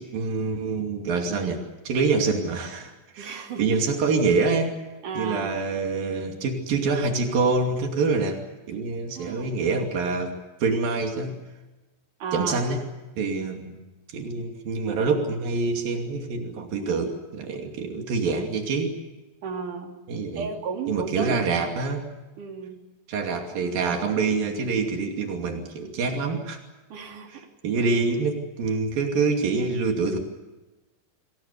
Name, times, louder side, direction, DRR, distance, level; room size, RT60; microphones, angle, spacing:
voice 1, 0.0-4.8 5.2-8.4 8.7-11.4 12.3-12.8 13.2-13.8 14.1-18.9 20.1-20.5 20.9-22.1 23.1-26.6 27.3-30.2, right 4 dB, 85° right, 3 dB, 4.5 m, -26 dB
voice 2, 3.2-3.6 5.0-5.6 9.2-9.6 12.2-12.6 19.4-20.0 20.3-21.4 22.4-22.8 26.9-27.4 27.8-27.9, right 5 dB, 65° right, 3 dB, 4.4 m, -33 dB
28.0 x 21.5 x 6.8 m, 1.1 s
omnidirectional pair, 4.0 m